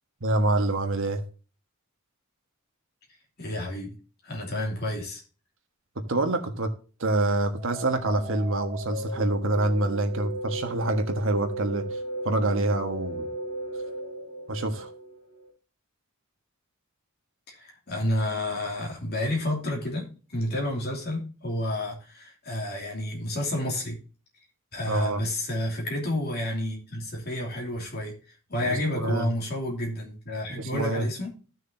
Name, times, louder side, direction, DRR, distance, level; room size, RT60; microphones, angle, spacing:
voice 1, 0.2-1.2 6.1-6.7 7.0-12.0 12.2-13.3 14.5-14.9 24.9-25.2 28.6-29.3 30.5-31.0, right 2 dB, 60° right, 1.5 m, -26 dB
voice 2, 3.4-3.9 4.2-5.2 17.5-24.0 24.7-28.1 28.5-31.3, left 1 dB, 45° left, 2.9 m, -30 dB
sound 1, 7.5-15.5, right 1 dB, 25° left, 3.4 m, -36 dB
15.0 x 6.4 x 2.7 m
head